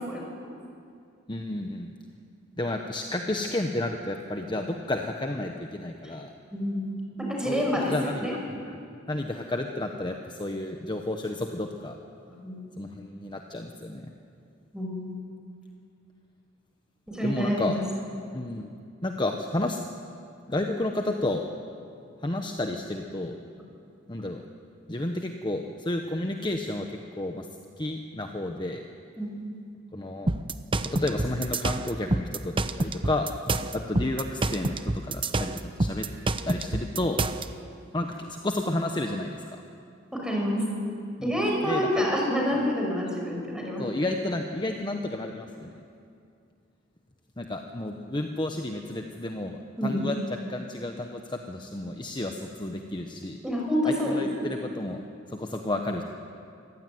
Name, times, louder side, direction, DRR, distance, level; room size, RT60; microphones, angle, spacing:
voice 1, 1.3-1.9 2.6-6.3 7.4-8.8 9.1-12.0 12.8-14.1 17.2-17.8 18.3-18.7 19.0-19.8 20.5-21.4 22.2-23.4 24.1-24.4 24.9-27.5 27.8-28.8 29.9-30.3 30.8-36.1 36.4-37.2 37.9-39.6 41.2-42.1 42.6-42.7 43.8-45.7 47.4-53.4 53.8-55.0 55.3-56.0, left 1 dB, 25° left, 3 dB, 1.1 m, -31 dB
voice 2, 6.5-8.4 12.4-12.6 14.7-15.2 17.1-17.8 29.2-29.3 40.1-40.6 41.2-43.9 49.8-50.0 53.4-54.5, equal, 5° right, -1 dB, 5.6 m, -28 dB
sound 1, 30.3-37.5, right 2 dB, 25° right, 0.8 m, -27 dB
24.5 x 16.0 x 9.4 m, 2.4 s
head